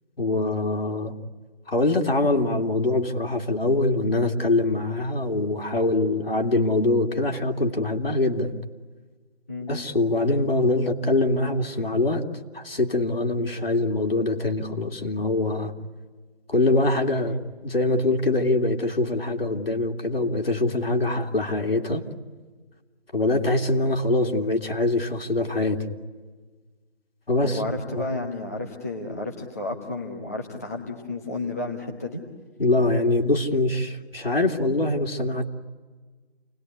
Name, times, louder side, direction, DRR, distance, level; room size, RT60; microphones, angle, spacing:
voice 1, 0.2-1.2 1.7-8.5 9.7-12.2 12.5-15.7 16.5-17.4 17.6-22.0 23.1-25.8 27.3-27.6 28.0-28.1 32.6-35.5, left 2 dB, 60° left, 2 dB, 3.1 m, -23 dB
voice 2, 27.4-32.2, left 2 dB, 15° left, -2 dB, 1.2 m, -32 dB
29.5 x 20.5 x 9.7 m, 1.4 s
figure-of-eight pair, 170°, 33 cm